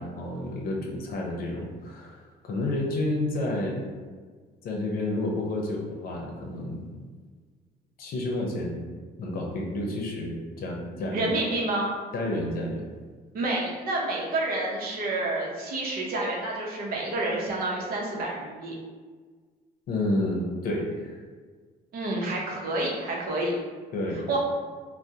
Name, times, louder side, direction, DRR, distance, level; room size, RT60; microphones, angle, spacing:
voice 1, 0.0-3.8 4.6-6.9 8.0-8.8 9.2-11.3 12.1-12.8 19.9-21.2 23.9-24.2, left 1 dB, 60° left, -1 dB, 0.7 m, -30 dB
voice 2, 11.1-11.9 13.3-18.7 21.9-23.5 24.3-24.4, right 2 dB, 60° right, -3 dB, 0.8 m, -29 dB
3.4 x 2.2 x 2.8 m, 1.5 s
cardioid pair, 110°, 17 cm